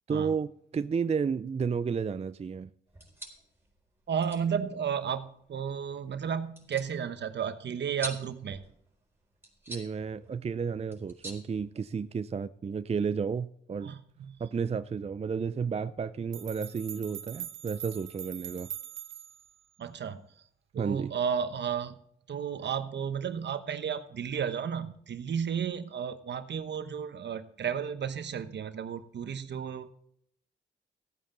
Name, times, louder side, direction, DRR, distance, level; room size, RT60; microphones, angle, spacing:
voice 1, 0.1-2.7 9.7-13.9 14.4-18.7 20.8-21.1, right 6 dB, 35° right, 0.4 m, -32 dB
sound 1, 2.9-12.3, right 1 dB, 10° right, 4.2 m, -48 dB
voice 2, 4.1-8.6 13.8-14.4 19.8-20.2 20.7-21.9 22.3-29.9, right 7 dB, 65° right, 1.0 m, -33 dB
sound 2, 16.0-16.1 16.3-19.5, right 11 dB, 85° right, 0.7 m, -42 dB
15.5 x 8.8 x 3.9 m
supercardioid pair, 55°, 20 cm